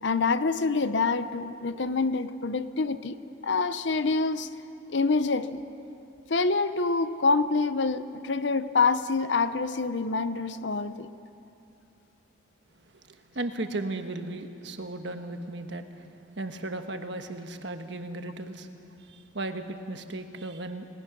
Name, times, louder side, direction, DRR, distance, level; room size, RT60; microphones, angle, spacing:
voice 1, 0.0-3.2 3.4-4.5 4.9-5.6 6.3-11.1, left 4 dB, 65° left, 12 dB, 0.7 m, -26 dB
voice 2, 12.9-16.1 16.4-18.7 19.0-20.9, right 2 dB, 65° right, 7 dB, 1.4 m, -36 dB
29.5 x 19.5 x 6.1 m, 2.8 s
head